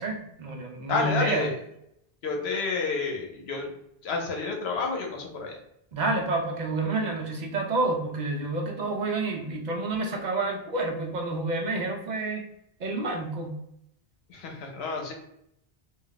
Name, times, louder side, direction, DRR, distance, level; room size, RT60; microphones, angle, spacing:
voice 1, 0.0-1.5 5.9-12.5 12.8-13.6, right 2 dB, 55° right, 2 dB, 0.5 m, -29 dB
voice 2, 0.9-1.5 2.2-3.7 4.0-5.6 14.3-15.1, left 4 dB, 90° left, 1 dB, 0.9 m, -29 dB
2.3 x 2.1 x 3.8 m, 0.76 s
omnidirectional pair, 1.0 m